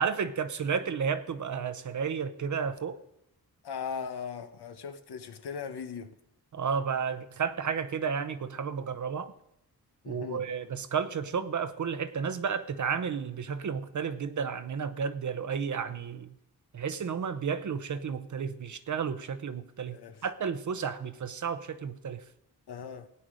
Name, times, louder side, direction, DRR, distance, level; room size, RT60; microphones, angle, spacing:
voice 1, 0.0-3.0 6.5-9.3 10.1-16.3 16.7-22.2, right 6 dB, 50° right, 0.8 m, -32 dB
voice 2, 3.6-6.1 10.0-10.5 19.9-20.2 22.7-23.1, left 6 dB, 80° left, 1.1 m, -39 dB
17.0 x 9.5 x 5.0 m
wide cardioid pair, 130°, 39 cm